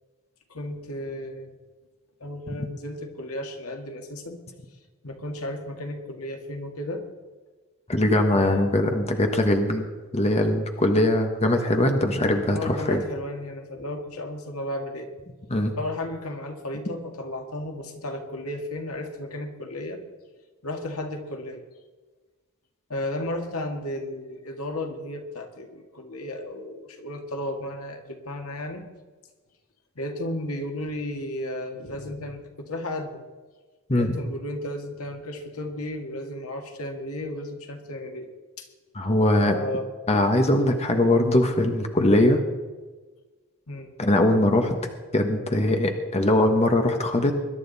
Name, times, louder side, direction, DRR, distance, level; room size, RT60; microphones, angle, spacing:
voice 1, 0.5-1.5 2.2-4.4 5.0-7.0 8.3-8.8 12.5-15.1 15.6-20.0 20.6-21.6 22.9-28.8 30.0-33.2 33.9-38.3 38.6-38.7 39.5-39.9 43.7-43.9, left 1 dB, 80° left, 4 dB, 2.0 m, -34 dB
voice 2, 7.9-9.8 10.1-13.0 15.5-15.7 33.9-34.1 38.9-39.6 40.1-42.4 44.0-44.8 45.1-47.3, left 1 dB, 30° left, 5 dB, 1.3 m, -21 dB
21.5 x 11.0 x 4.1 m, 1.3 s
head